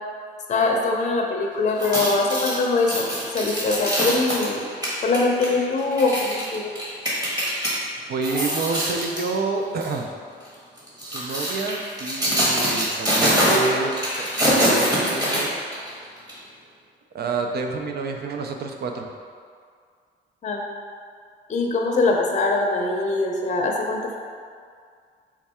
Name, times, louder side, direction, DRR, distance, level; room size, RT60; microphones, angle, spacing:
voice 1, 0.5-3.0 3.3-4.6 5.0-6.7 20.4-20.6 21.5-24.2, left 3 dB, 35° left, 0 dB, 0.6 m, -22 dB
sound 1, 1.7-7.7 8.1-9.3 9.8-10.0 10.8-15.9 16.3-16.4, equal, 20° right, 1.4 m, -24 dB
voice 2, 8.0-10.0 11.0-13.9 14.2-15.5 17.1-19.1, right 4 dB, 55° right, 3 dB, 0.5 m, -28 dB
4.5 x 2.4 x 4.2 m, 2.1 s
cardioid pair, 90°, 20 cm